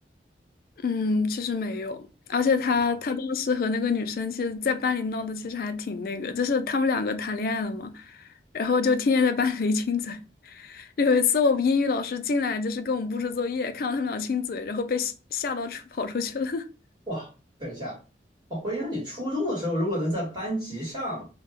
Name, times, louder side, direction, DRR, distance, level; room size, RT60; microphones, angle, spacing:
voice 1, 0.8-2.0 2.3-8.3 8.5-16.7, left 4 dB, 55° left, 0.4 m, -26 dB
voice 2, 17.6-18.0 18.5-21.2, equal, 25° right, 1.5 m, -30 dB
2.5 x 2.2 x 3.5 m
head